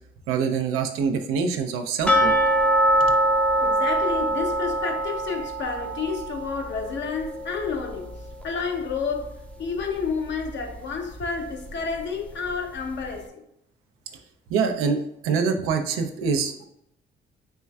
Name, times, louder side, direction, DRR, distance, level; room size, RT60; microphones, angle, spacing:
voice 1, 0.3-2.3 3.1-3.2 14.5-15.0 15.2-16.6, right 5 dB, 85° right, 0.5 m, -25 dB
sound 1, 2.1-8.9 9.2-9.3 9.8-9.9 10.4-10.5, right 1 dB, 5° left, 0.5 m, -24 dB
voice 2, 3.6-8.1 8.4-13.5, left 5 dB, 60° left, 0.8 m, -30 dB
4.4 x 3.1 x 2.3 m
supercardioid pair, 75°, 21 cm